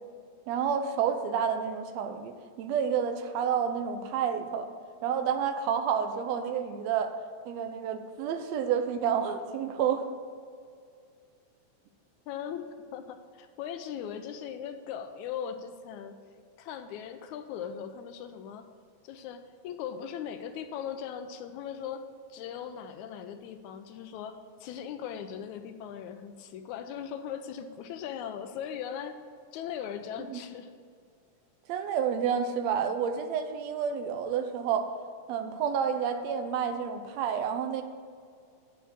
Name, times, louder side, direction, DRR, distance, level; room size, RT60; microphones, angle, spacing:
voice 1, 0.5-4.7 5.0-7.1 7.5-10.0 30.3-30.4 31.7-34.9 35.3-37.8, right 7 dB, 75° right, 7 dB, 1.6 m, -29 dB
voice 2, 12.3-16.2 16.6-18.7 19.0-29.2 29.5-30.7, left 8 dB, 80° left, 8 dB, 1.8 m, -39 dB
10.0 x 4.2 x 7.1 m, 2.2 s
omnidirectional pair, 3.6 m